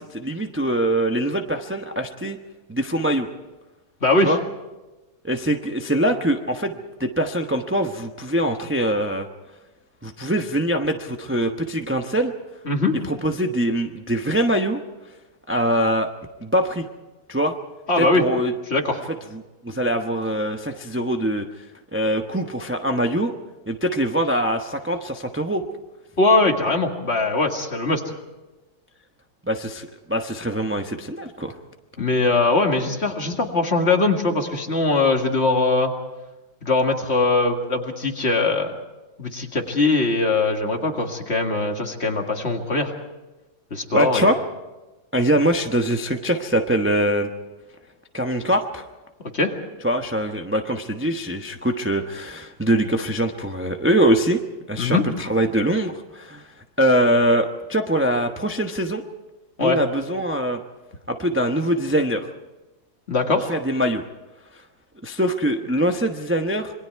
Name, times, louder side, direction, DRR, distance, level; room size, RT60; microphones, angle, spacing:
voice 1, 0.0-2.4 2.7-3.3 4.2-4.4 5.2-9.3 10.0-12.3 13.1-14.8 15.5-16.1 16.4-16.9 17.3-17.5 18.0-18.5 18.9-19.0 19.3-21.4 21.9-23.3 23.7-25.6 29.5-31.6 43.9-44.4 45.1-47.3 48.1-48.8 49.8-54.4 54.7-56.5 56.8-59.0 59.6-60.6 61.1-62.3 63.5-64.0 64.5-64.6 65.0-66.7, right 1 dB, 10° right, 4 dB, 0.7 m, -23 dB
voice 2, 4.0-4.3 12.7-13.0 17.9-18.2 18.7-19.0 26.2-28.0 32.0-35.9 36.6-38.7 39.2-42.9 43.7-44.3 49.3-49.5 54.8-55.0 59.6-59.8 63.1-63.5, left 3 dB, 35° left, 3 dB, 2.1 m, -21 dB
27.0 x 22.5 x 4.7 m, 1.1 s
omnidirectional pair, 2.1 m